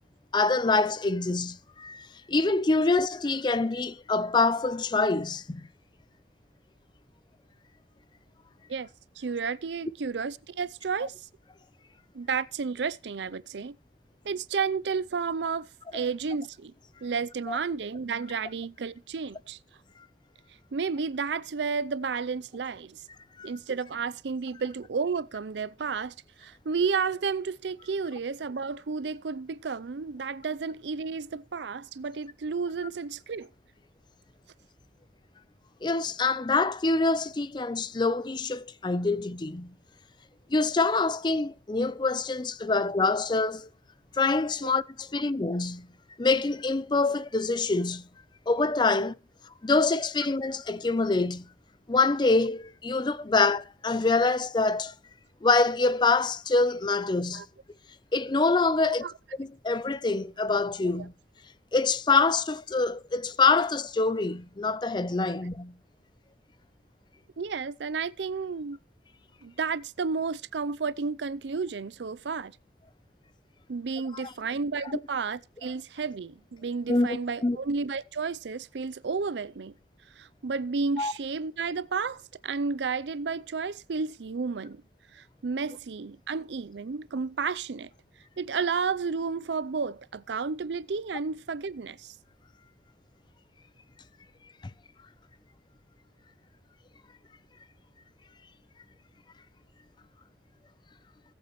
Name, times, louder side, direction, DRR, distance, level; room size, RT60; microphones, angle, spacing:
voice 1, 0.3-5.7 17.5-17.6 23.4-23.5 35.8-39.7 40.5-43.7 44.2-45.9 46.2-48.1 48.5-49.1 49.6-51.5 51.9-54.9 55.4-57.4 58.1-59.0 59.4-61.1 61.7-65.8 74.1-74.3 74.9-75.0 76.9-77.6 81.0-81.1, left 3 dB, 25° left, 0.5 m, -25 dB
voice 2, 9.2-11.1 12.1-13.8 14.2-15.7 15.9-16.7 17.0-19.6 20.7-23.0 23.4-33.5 57.3-57.5 58.8-59.1 67.4-68.8 69.4-72.6 73.7-79.7 80.2-84.8 85.1-87.9 88.4-92.1, right 5 dB, 80° right, 0.5 m, -32 dB
17.5 x 7.8 x 3.1 m
head